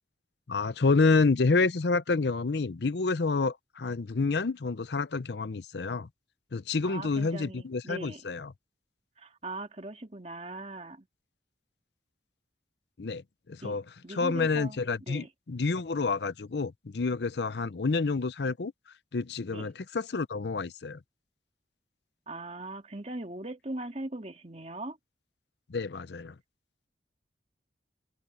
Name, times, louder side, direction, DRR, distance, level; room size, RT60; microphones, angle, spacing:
voice 1, 0.5-6.1 6.5-8.5 13.0-13.8 14.1-18.7 19.1-21.0 25.7-26.4, left 4 dB, 70° left, 0.6 m, -28 dB
voice 2, 6.8-8.2 9.2-11.1 13.6-13.8 14.0-14.8 15.1-15.3 19.5-19.7 22.3-25.0, right 2 dB, 35° right, 2.6 m, -40 dB
head